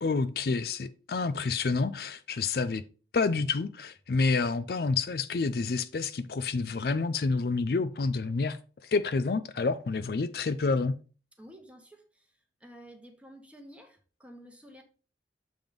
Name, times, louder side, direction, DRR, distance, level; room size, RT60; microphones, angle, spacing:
voice 1, 0.0-2.8 3.1-10.9, left 4 dB, 55° left, 0.4 m, -28 dB
voice 2, 11.4-14.8, equal, 5° right, 1.1 m, -51 dB
7.6 x 3.6 x 5.1 m
head